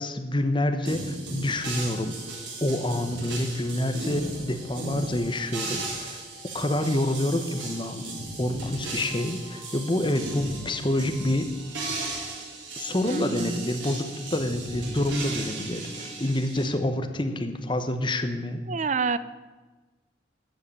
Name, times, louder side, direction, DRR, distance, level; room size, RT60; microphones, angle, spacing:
voice 1, 0.0-2.2 2.6-6.2 6.5-8.0 8.4-11.5 12.8-18.6, left 1 dB, 25° left, 7 dB, 0.9 m, -27 dB
sound 1, 0.9-16.7, right 2 dB, 85° right, 3.6 m, -36 dB
sound 2, 1.9-16.6, right 1 dB, 75° left, 2.3 m, -54 dB
voice 2, 13.1-13.7 18.7-19.2, right 4 dB, 40° right, 15 dB, 0.5 m, -28 dB
13.5 x 5.6 x 8.6 m, 1.3 s
head